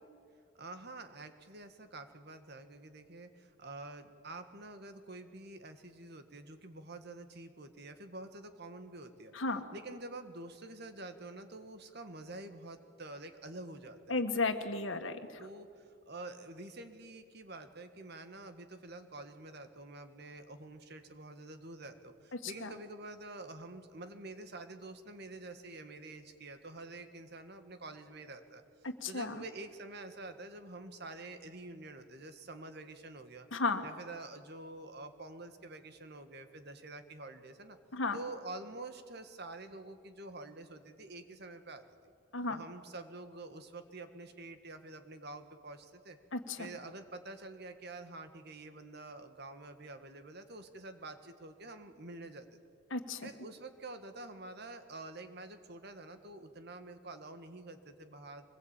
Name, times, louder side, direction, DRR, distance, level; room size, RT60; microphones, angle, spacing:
voice 1, 0.6-9.3 9.7-14.4 15.4-28.6 29.0-33.5 33.8-37.8 38.1-41.8 42.5-46.2 46.6-52.5 53.2-58.5, right 2 dB, 50° right, 9 dB, 1.7 m, -47 dB
voice 2, 14.1-15.4 22.3-22.7 28.8-29.4 33.5-33.8 37.9-38.2 42.3-42.6 46.3-46.7 52.9-53.3, left 3 dB, 70° left, 7 dB, 1.7 m, -34 dB
24.5 x 20.5 x 9.0 m, 2.3 s
head